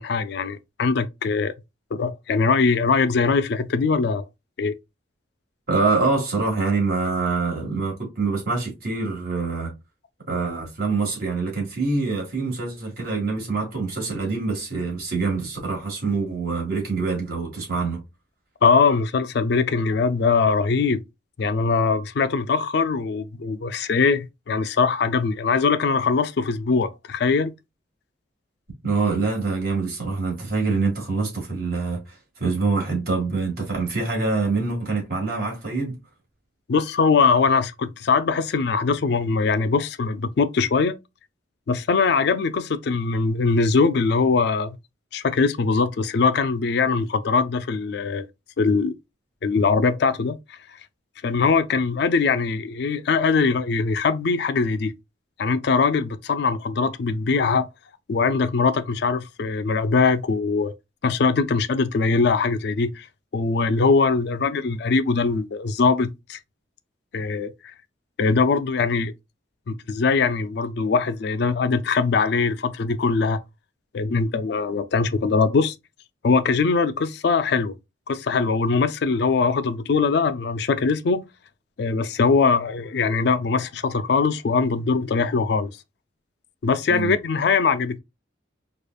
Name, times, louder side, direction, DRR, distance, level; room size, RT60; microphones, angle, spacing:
voice 1, 0.0-1.5 1.9-4.2 4.6-4.7 18.6-21.0 21.4-27.5 36.7-41.0 41.7-44.8 45.1-48.3 48.6-48.9 49.4-50.6 51.2-54.9 55.4-57.7 58.1-60.7 61.0-63.1 63.3-66.4 67.1-67.7 68.2-69.1 69.7-73.4 73.9-75.7 76.2-77.7 78.1-81.2 81.8-85.7 86.6-88.0, left 4 dB, 60° left, 0.4 m, -21 dB
voice 2, 5.7-9.7 10.3-18.0 28.8-36.0 86.9-87.2, right 4 dB, 50° right, 1.9 m, -25 dB
4.8 x 2.4 x 2.4 m
head